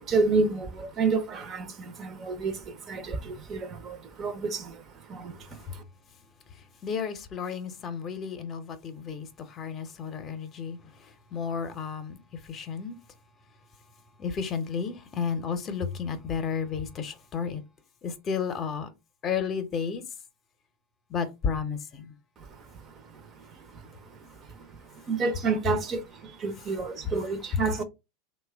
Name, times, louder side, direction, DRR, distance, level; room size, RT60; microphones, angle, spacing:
voice 1, 0.0-5.8 22.4-27.8, right 4 dB, 35° right, 0.6 m, -31 dB
voice 2, 6.8-10.8 11.3-12.2 12.4-13.0 14.2-17.6 18.0-18.9 19.2-20.0 21.1-22.1, left 6 dB, 35° left, 0.7 m, -32 dB
2.9 x 2.2 x 3.3 m
hypercardioid pair, 105°, 0 cm